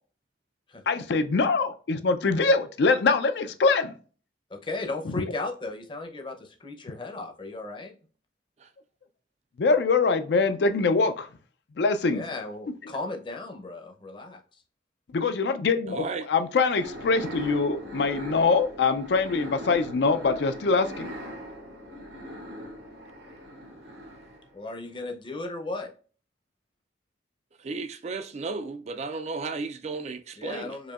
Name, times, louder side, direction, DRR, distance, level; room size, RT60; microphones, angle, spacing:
voice 1, 0.9-3.9 5.1-5.2 9.6-11.3 11.8-12.2 15.1-21.1, left 4 dB, 65° left, 0.4 m, -24 dB
voice 2, 4.5-8.0 12.1-14.4 24.5-25.9 30.4-30.9, left 2 dB, 25° left, 0.6 m, -35 dB
voice 3, 15.9-16.3 27.6-30.8, right 4 dB, 35° right, 0.3 m, -34 dB
sound 1, 16.5-24.6, equal, 90° right, 1.5 m, -40 dB
4.9 x 2.6 x 2.4 m
head